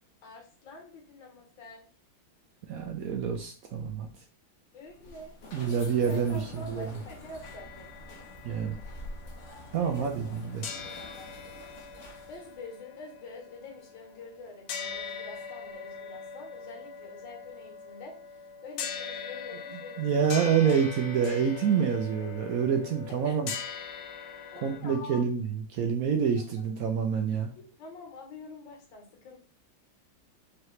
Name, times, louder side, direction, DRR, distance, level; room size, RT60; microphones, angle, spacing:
voice 1, 0.2-1.8 4.7-5.3 5.7-5.8 6.1-7.9 9.8-10.4 12.3-20.8 21.2-21.3 23.2-23.4 24.5-25.2 26.3-26.7 27.6-29.4, left 3 dB, 70° left, 0 dB, 2.0 m, -46 dB
voice 2, 2.7-4.1 5.5-6.9 8.4-8.8 9.7-10.7 20.0-23.5 24.6-27.5, right 7 dB, 75° right, 4 dB, 0.8 m, -27 dB
sound 1, 4.8-12.6, left 1 dB, 50° left, 1.0 m, -46 dB
sound 2, 7.4-10.3 10.6-24.8, left 6 dB, 90° left, 1.4 m, -42 dB
4.7 x 3.0 x 3.1 m, 0.38 s
omnidirectional pair, 2.1 m